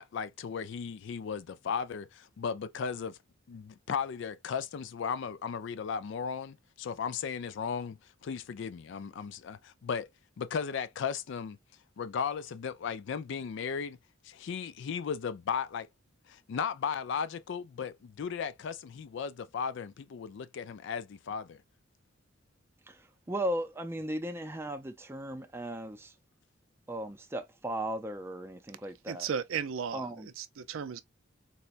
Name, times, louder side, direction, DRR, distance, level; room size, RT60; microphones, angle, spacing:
voice 1, 0.0-3.2 3.5-10.1 10.4-11.6 12.0-14.0 14.2-15.9 16.3-21.6, left 6 dB, 60° left, 0.3 m, -36 dB
voice 2, 22.9-26.1 26.9-29.3 29.9-30.3, right 1 dB, 10° right, 0.4 m, -36 dB
voice 3, 29.1-30.0 30.4-31.0, right 7 dB, 80° right, 0.5 m, -34 dB
4.1 x 2.2 x 2.4 m
head